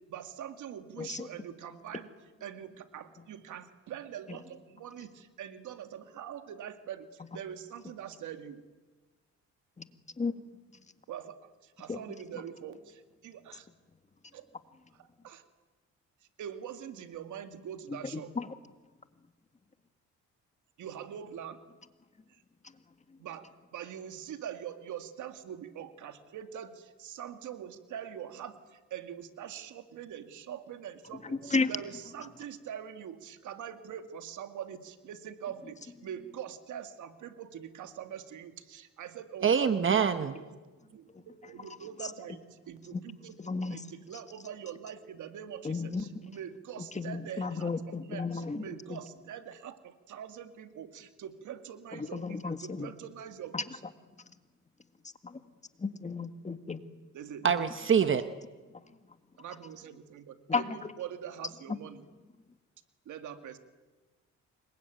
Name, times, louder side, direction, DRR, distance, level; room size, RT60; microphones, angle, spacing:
voice 1, 0.1-2.1 2.4-8.6 11.1-13.7 14.3-14.5 15.0-15.4 16.4-18.3 20.8-21.6 22.3-22.4 23.2-39.9 40.3-40.6 41.3-43.3 43.7-53.6 57.1-57.5 59.4-62.0 63.1-63.6, right 9 dB, 75° right, 8 dB, 2.2 m, -43 dB
voice 2, 1.0-1.3 4.3-4.4 9.8-9.9 10.2-10.3 10.7-10.9 11.9-12.0 17.9-18.5 22.6-22.8 23.1-23.2 31.2-31.7 41.6-42.1 42.9-43.0 43.4-44.2 45.6-46.1 46.8-49.0 51.9-52.9 53.5-53.6 54.2-54.4 55.2-55.5 55.8-56.8 57.4-57.5 58.7-58.9 60.5-60.8 61.7-61.8, left 4 dB, 25° left, 9 dB, 1.8 m, -34 dB
voice 3, 39.4-40.4 57.4-58.3, right 7 dB, 40° right, 10 dB, 1.2 m, -25 dB
27.5 x 23.0 x 9.3 m, 1.3 s
cardioid pair, 90°, 30 cm